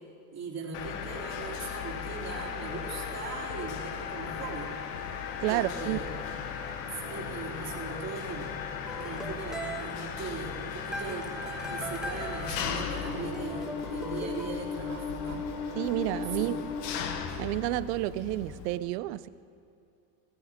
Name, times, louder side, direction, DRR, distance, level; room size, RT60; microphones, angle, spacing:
voice 1, 0.3-4.7 5.5-6.1 6.9-8.6 8.9-11.3 11.6-15.4 16.3-16.5, right 4 dB, 35° right, 3.1 m, -39 dB
Mechanisms, 0.7-18.8, left 6 dB, 90° left, 1.3 m, -36 dB
voice 2, 5.4-6.0 15.8-16.6 17.4-19.3, right 16 dB, 90° right, 0.6 m, -30 dB
sound 1, 8.9-14.5, right 1 dB, ahead, 1.0 m, -41 dB
19.5 x 14.0 x 3.6 m
supercardioid pair, 120°, 47 cm